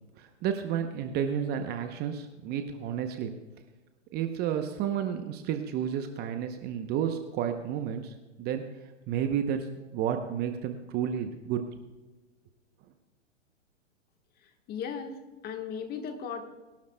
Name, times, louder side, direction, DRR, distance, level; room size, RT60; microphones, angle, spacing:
voice 1, 0.2-3.3 4.1-8.7 9.1-11.6, right 9 dB, 25° right, 7 dB, 0.7 m, -31 dB
voice 2, 14.7-15.2 15.4-16.4, left 7 dB, 25° left, 6 dB, 1.3 m, -36 dB
22.5 x 12.0 x 2.2 m, 1.2 s
hypercardioid pair, 120°, 38 cm